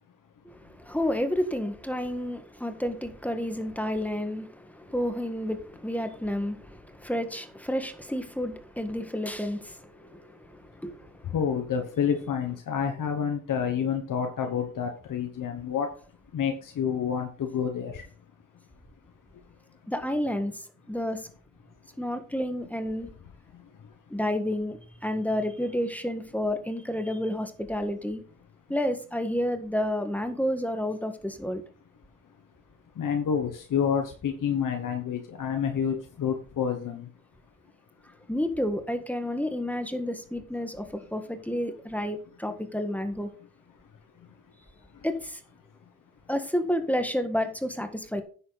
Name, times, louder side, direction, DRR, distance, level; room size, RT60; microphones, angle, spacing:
voice 1, 0.4-11.3 19.9-21.3 22.0-23.1 24.1-28.2 28.7-31.6 38.3-43.3 45.0-45.4 46.3-48.2, left 1 dB, 5° left, 1.6 m, -30 dB
voice 2, 11.3-15.9 16.3-17.9 33.0-37.0, left 7 dB, 85° left, 1.2 m, -28 dB
9.9 x 7.9 x 4.1 m
cardioid pair, 80°, 31 cm